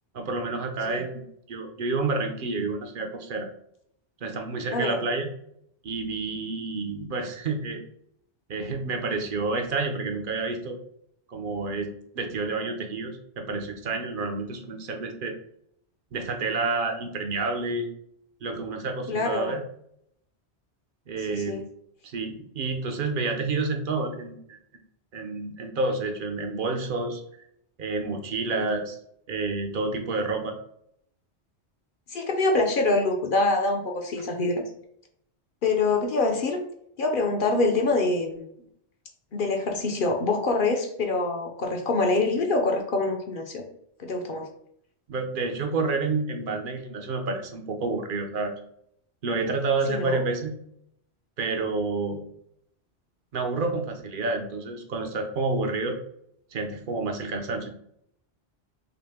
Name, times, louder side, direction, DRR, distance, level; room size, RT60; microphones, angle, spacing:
voice 1, 0.1-3.5 4.2-5.3 5.8-7.8 8.5-10.8 11.3-15.4 16.1-17.9 18.4-19.6 21.1-21.6 22.0-24.6 25.1-27.5 27.8-29.0 29.3-30.6 45.1-48.5 49.2-50.6 51.4-52.2 53.3-56.0 56.5-57.7, right 3 dB, 55° right, 4 dB, 0.8 m, -29 dB
voice 2, 19.1-19.5 21.3-21.6 28.5-28.7 32.1-34.6 35.6-36.6 37.0-38.5 39.3-43.6 44.0-44.5 49.9-50.2, left 3 dB, 55° left, 2 dB, 0.7 m, -25 dB
5.8 x 2.1 x 3.4 m, 0.71 s
omnidirectional pair, 1.2 m